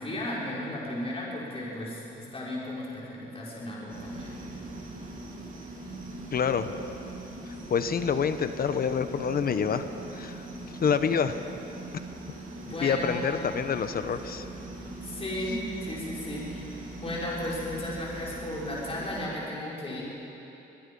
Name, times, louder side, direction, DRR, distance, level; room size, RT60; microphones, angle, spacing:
voice 1, 0.0-4.4 12.6-13.3 15.0-16.7 17.0-20.0, left 1 dB, 30° left, -6 dB, 5.6 m, -35 dB
sound 1, 3.9-19.3, right 2 dB, 45° right, 6.9 m, -41 dB
voice 2, 6.3-6.8 7.5-9.8 10.1-10.5 10.8-11.4 12.8-14.4, left 6 dB, 50° left, 10 dB, 1.0 m, -27 dB
22.5 x 22.5 x 5.5 m, 3.0 s
cardioid pair, 90°, 20 cm